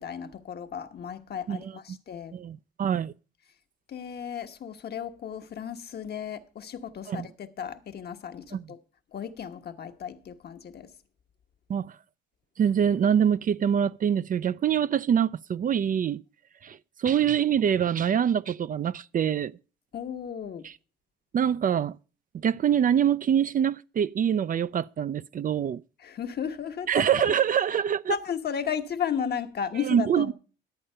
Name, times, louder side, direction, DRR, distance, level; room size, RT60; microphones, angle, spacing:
voice 1, 0.0-2.3 3.9-8.8 9.1-10.9 19.9-20.7 26.0-27.0 28.1-30.3, left 7 dB, 55° left, 1.2 m, -34 dB
voice 2, 1.5-2.0 2.3-3.1 7.1-7.3 8.5-8.6 11.7-11.9 12.6-16.2 16.6-19.5 20.6-20.7 21.3-21.9 22.3-25.8 26.9-28.1 29.8-30.3, right 8 dB, 45° right, 0.4 m, -25 dB
11.5 x 8.6 x 5.5 m
cardioid pair, 90°, 20 cm